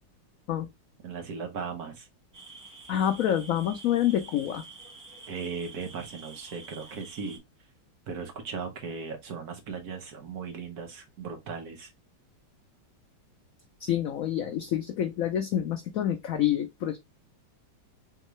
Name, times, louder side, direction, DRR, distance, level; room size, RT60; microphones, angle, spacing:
voice 1, 1.0-2.1 5.3-7.4 8.1-11.9, right 5 dB, 60° right, 1.4 m, -37 dB
sound 1, 2.3-7.4, right 4 dB, 15° right, 0.8 m, -48 dB
voice 2, 2.9-4.6 13.8-17.0, left 11 dB, 85° left, 0.7 m, -27 dB
3.6 x 3.6 x 3.1 m
omnidirectional pair, 2.0 m